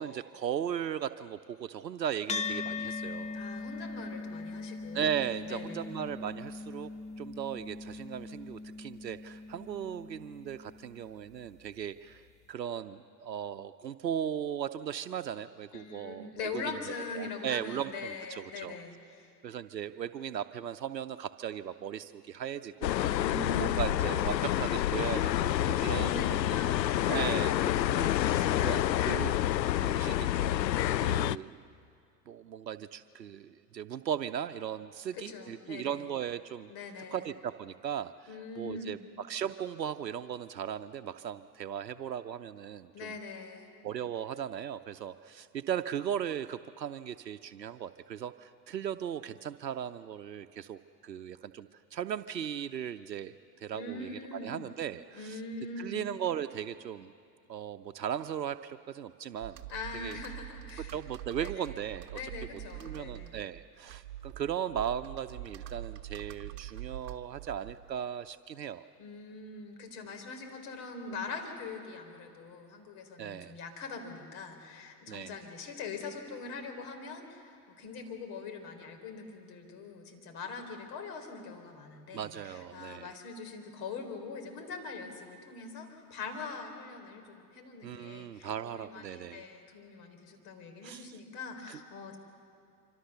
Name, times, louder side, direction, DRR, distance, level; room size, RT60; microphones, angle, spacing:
voice 1, 0.0-3.4 4.9-6.9 7.2-16.6 17.1-18.8 19.4-22.9 23.6-26.2 26.6-26.8 27.1-29.3 29.8-30.6 31.0-31.6 32.3-36.7 37.1-43.1 43.8-55.4 55.8-57.1 57.5-59.6 59.9-60.2 60.9-62.2 62.8-68.8 73.2-73.6 75.1-75.3 82.1-83.1 87.8-89.4 90.8-91.2 91.7-91.8, right 9 dB, 90° right, 9 dB, 0.7 m, -37 dB
sound 1, 2.3-11.0, left 4 dB, 15° left, 0.7 m, -40 dB
voice 2, 3.3-6.0 15.7-19.3 23.1-23.9 25.9-27.5 35.1-36.1 36.7-37.2 38.3-39.1 42.9-43.7 53.7-54.6 55.1-56.0 59.7-61.0 61.4-61.8 62.1-63.4 69.0-92.2, left 4 dB, 50° left, 5 dB, 4.5 m, -42 dB
sound 2, 22.8-31.4, left 12 dB, 85° left, 0.6 m, -28 dB
Computer keyboard, 59.4-68.0, right 13 dB, 50° right, 1.3 m, -45 dB
26.0 x 25.5 x 6.8 m, 2.4 s
hypercardioid pair, 90°, 49 cm